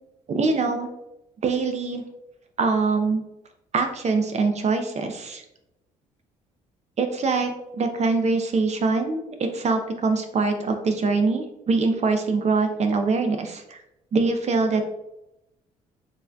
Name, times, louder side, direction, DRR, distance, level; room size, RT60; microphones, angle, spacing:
voice 1, 0.3-0.9 1.4-2.0 2.6-3.2 3.7-5.4 7.0-13.8 14.1-15.0, right 4 dB, 45° right, 5 dB, 0.5 m, -23 dB
4.6 x 2.6 x 2.2 m, 0.88 s
hypercardioid pair, 55°, 16 cm